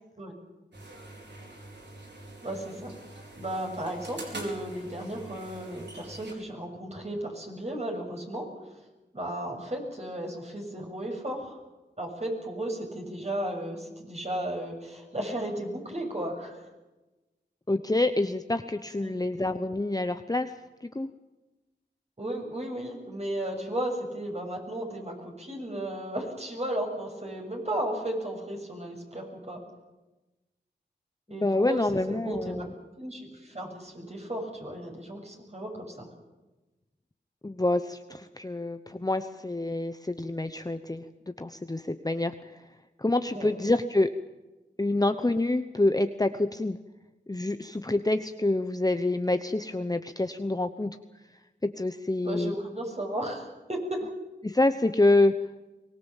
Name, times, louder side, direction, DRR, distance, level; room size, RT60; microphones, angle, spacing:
sound 1, 0.7-6.3, right 2 dB, 70° right, 4.8 m, -45 dB
voice 1, 2.4-2.9 3.4-8.5 9.1-11.6 12.0-16.6 19.0-19.2 22.2-29.6 31.3-32.6 33.0-36.1 43.3-43.5 52.2-54.1, right 1 dB, 35° right, 1 dB, 7.0 m, -34 dB
voice 2, 17.7-20.5 20.9-21.1 31.3-32.7 37.4-42.3 43.0-44.1 44.8-46.8 47.3-51.0 51.6-52.5 54.4-55.3, left 2 dB, 20° left, 9 dB, 0.9 m, -27 dB
24.0 x 19.5 x 7.4 m, 1.1 s
wide cardioid pair, 50°, 18 cm